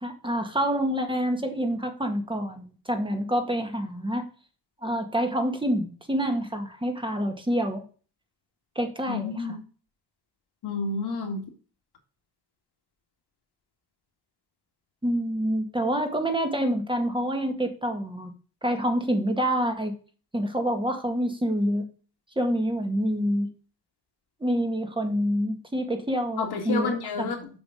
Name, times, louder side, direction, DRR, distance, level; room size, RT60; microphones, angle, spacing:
voice 1, 0.0-4.2 4.8-7.8 8.8-9.6 15.0-18.3 18.6-20.0 20.3-21.9 22.4-23.5 24.4-27.0, equal, 10° right, 5 dB, 1.8 m, -27 dB
voice 2, 9.1-9.6 10.6-11.4 26.4-27.5, left 4 dB, 70° left, 3 dB, 2.4 m, -30 dB
7.2 x 5.2 x 5.1 m, 0.38 s
cardioid pair, 75°, 41 cm